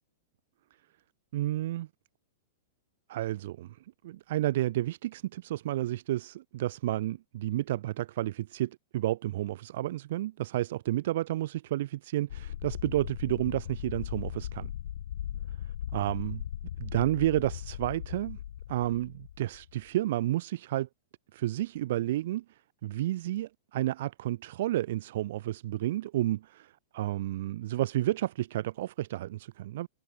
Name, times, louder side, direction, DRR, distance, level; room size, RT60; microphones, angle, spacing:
voice 1, 1.3-1.9 3.1-3.8 4.0-14.7 15.9-16.4 16.8-18.4 18.7-20.9 21.3-29.9, right 14 dB, 60° right, 1.8 m, -31 dB
sound 1, 12.3-19.9, left 11 dB, 75° left, 1.9 m, -38 dB
hypercardioid pair, 140°, 0 cm